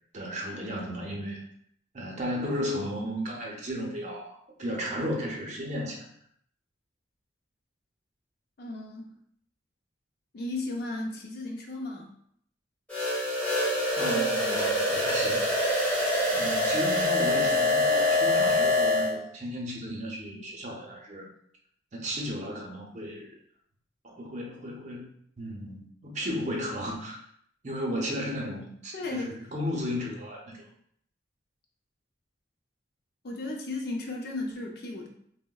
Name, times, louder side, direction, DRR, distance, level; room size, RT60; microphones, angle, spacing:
voice 1, 0.1-1.4 1.9-6.0 14.0-15.4 16.3-21.3 21.9-23.4 24.0-25.1 25.4-27.2 27.6-30.7, equal, 40° right, -1 dB, 0.5 m, -34 dB
voice 2, 8.6-9.1 10.3-12.1 17.4-17.8 28.9-29.4 33.2-35.1, left 2 dB, 55° left, 1 dB, 0.5 m, -35 dB
sound 1, 12.9-19.1, left 1 dB, 5° left, 1.2 m, -25 dB
3.7 x 2.0 x 2.2 m, 0.68 s
head